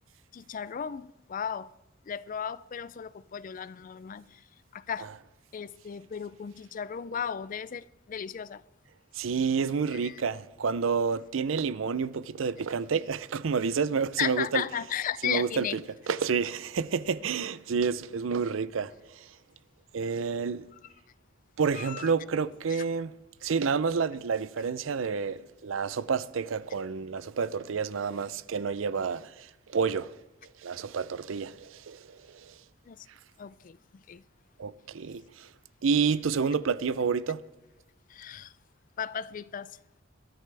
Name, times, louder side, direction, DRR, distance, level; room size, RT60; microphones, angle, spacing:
voice 1, 0.3-1.7 2.1-4.4 4.7-5.1 5.5-8.6 9.9-10.2 14.2-15.8 21.7-22.1 22.7-22.8 32.9-33.1 33.4-34.2 38.1-38.5 39.0-39.8, left 8 dB, 40° left, 0.4 m, -35 dB
voice 2, 9.1-14.6 15.2-15.8 16.1-19.3 19.9-20.7 21.6-23.1 23.4-30.2 30.6-32.5 34.6-35.5 35.8-37.4, right 5 dB, 90° right, 0.5 m, -29 dB
21.5 x 13.0 x 3.4 m
head